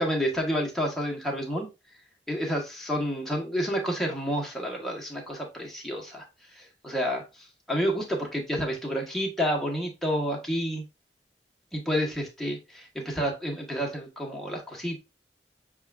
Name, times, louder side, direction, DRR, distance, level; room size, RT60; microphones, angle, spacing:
voice 1, 0.0-1.7 2.3-10.8 11.7-15.0, equal, ahead, -1 dB, 1.1 m, -30 dB
6.4 x 2.4 x 3.3 m, 0.27 s
head